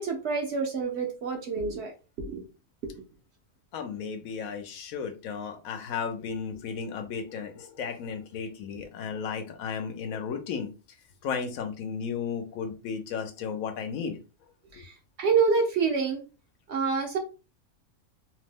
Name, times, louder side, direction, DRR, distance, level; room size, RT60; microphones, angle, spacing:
voice 1, 0.0-2.4 2.8-2.9 14.7-16.2 16.7-17.2, right 5 dB, 60° right, 3 dB, 0.8 m, -27 dB
voice 2, 3.7-10.7 11.2-14.2 14.8-14.9, left 6 dB, 75° left, 7 dB, 1.0 m, -34 dB
2.9 x 2.0 x 3.4 m, 0.32 s
omnidirectional pair, 1.5 m